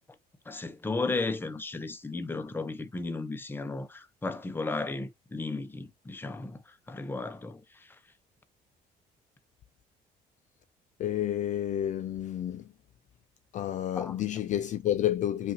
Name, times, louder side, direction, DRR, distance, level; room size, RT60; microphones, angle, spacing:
voice 1, 0.5-6.6 6.9-7.9 14.0-14.2, left 3 dB, 10° left, 0.7 m, -34 dB
voice 2, 11.0-12.7 13.5-15.5, left 11 dB, 50° left, 0.4 m, -30 dB
5.5 x 2.5 x 2.7 m
cardioid pair, 110°, 17 cm